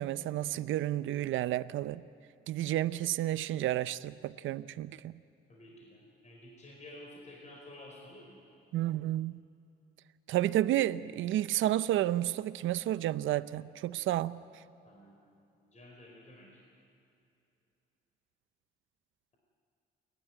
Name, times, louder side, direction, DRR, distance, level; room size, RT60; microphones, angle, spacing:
voice 1, 0.0-2.0 2.5-5.2 8.7-9.3 10.3-14.4, right 13 dB, 80° right, 0.6 m, -31 dB
voice 2, 5.5-8.4 14.8-15.2 15.6-16.6, left 1 dB, 35° left, 4.6 m, -51 dB
29.0 x 12.5 x 9.5 m
cardioid pair, 90°, 20 cm